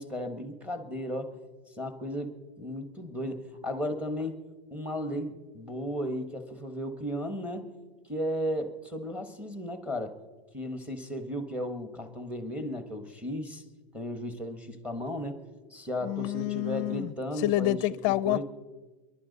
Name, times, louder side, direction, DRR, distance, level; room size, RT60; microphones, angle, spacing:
voice 1, 0.0-1.4 1.8-4.4 4.7-7.7 8.0-10.1 10.5-13.6 13.9-17.8 18.2-18.4, equal, 5° right, 1.3 m, -35 dB
voice 2, 16.0-17.1 17.4-18.4, left 16 dB, 40° left, 0.5 m, -28 dB
27.0 x 11.5 x 4.0 m
supercardioid pair, 155°, 29 cm